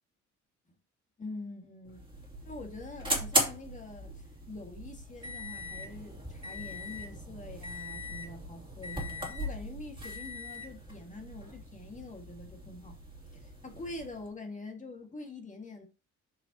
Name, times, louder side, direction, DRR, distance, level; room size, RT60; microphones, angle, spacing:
voice 1, 1.2-2.0 2.4-13.0 13.3-15.9, left 2 dB, 25° left, 2.1 m, -45 dB
sound 1, 1.9-14.3, right 1 dB, 15° right, 2.8 m, -38 dB
7.2 x 5.0 x 3.0 m
cardioid pair, 90°, 30 cm